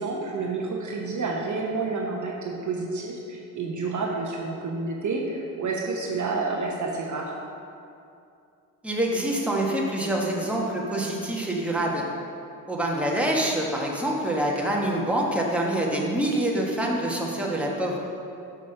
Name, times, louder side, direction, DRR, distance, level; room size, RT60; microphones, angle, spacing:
voice 1, 0.0-7.4, right 3 dB, 45° right, -1 dB, 1.0 m, -29 dB
voice 2, 8.8-12.0 12.7-18.0, right 1 dB, 5° right, -3 dB, 1.5 m, -26 dB
6.3 x 5.3 x 5.6 m, 2.6 s
supercardioid pair, 60°, 43 cm